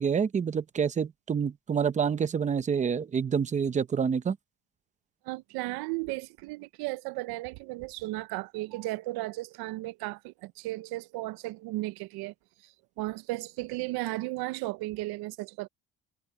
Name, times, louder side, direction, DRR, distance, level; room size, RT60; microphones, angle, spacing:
voice 1, 0.0-4.4, right 7 dB, 20° right, 0.7 m, -27 dB
voice 2, 5.2-12.3 12.6-15.7, right 19 dB, 80° right, 0.7 m, -35 dB
cardioid pair, 165°, 37 cm